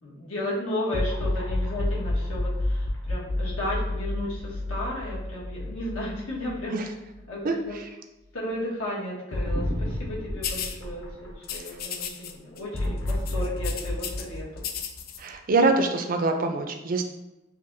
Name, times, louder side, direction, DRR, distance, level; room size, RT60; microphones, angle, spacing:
voice 1, 0.0-6.8 7.3-7.8 8.3-14.6, left 1 dB, 90° left, -5 dB, 1.3 m, -34 dB
sound 1, 0.9-7.3 7.6-7.7 9.3-11.8 12.7-15.5, left 1 dB, 65° left, 0.8 m, -30 dB
voice 2, 7.4-7.9 15.2-17.0, right 3 dB, 45° right, 5 dB, 0.4 m, -24 dB
sound 2, 10.4-10.8 11.4-12.3 12.6-12.8 13.1-14.2 14.6-15.2, left 8 dB, 45° left, 0.4 m, -34 dB
5.7 x 2.9 x 2.6 m, 0.97 s
head